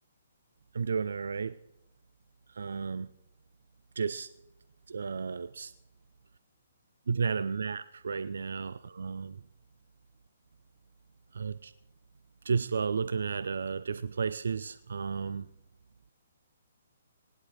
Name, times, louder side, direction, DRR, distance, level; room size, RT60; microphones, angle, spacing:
voice 1, 0.7-1.5 2.5-3.1 4.0-4.3 4.9-5.7 7.1-9.4 11.3-11.7 12.4-15.5, right 5 dB, 65° right, 0.3 m, -33 dB
18.5 x 11.0 x 3.0 m
figure-of-eight pair, 125°, 0 cm